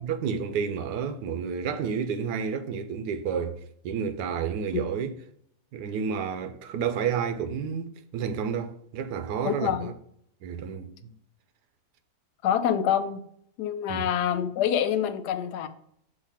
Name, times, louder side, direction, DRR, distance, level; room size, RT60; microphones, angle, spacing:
voice 1, 0.0-5.1 5.7-9.9 10.4-11.1 13.9-14.1, right 7 dB, 85° right, 1.3 m, -30 dB
voice 2, 9.4-9.9 12.4-13.2 13.6-15.7, left 9 dB, 90° left, 1.2 m, -26 dB
6.5 x 2.9 x 5.6 m
omnidirectional pair, 1.7 m